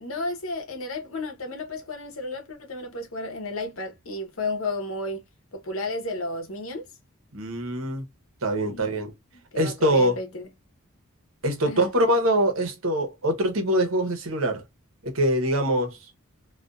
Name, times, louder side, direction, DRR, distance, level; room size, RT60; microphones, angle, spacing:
voice 1, 0.0-5.2 5.5-6.9 8.6-9.0 9.5-10.5 11.7-11.9, left 2 dB, 65° left, 0.9 m, -33 dB
voice 2, 7.3-8.0 8.4-9.1 9.6-10.2 11.4-14.6 15.0-16.0, right 1 dB, 65° right, 0.8 m, -23 dB
2.5 x 2.3 x 2.2 m
head